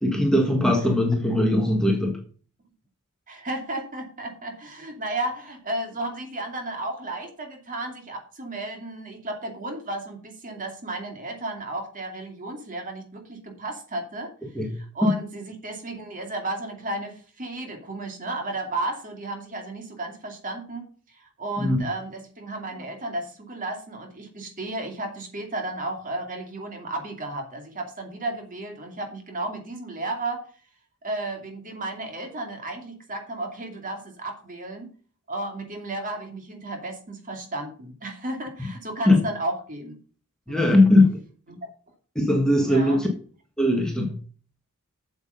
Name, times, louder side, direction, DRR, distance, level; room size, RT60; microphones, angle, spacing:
voice 1, 0.0-2.2 14.5-15.2 21.6-21.9 38.6-38.7 39.1-39.3 40.5-41.2 42.1-43.1 43.6-44.2, left 1 dB, 5° left, 1.5 m, -20 dB
voice 2, 3.3-14.3 14.7-30.4 31.0-34.9 35.3-40.0 40.5-40.8 41.5-41.6 42.6-43.0, right 2 dB, 40° right, 2.6 m, -33 dB
8.3 x 7.2 x 5.5 m
head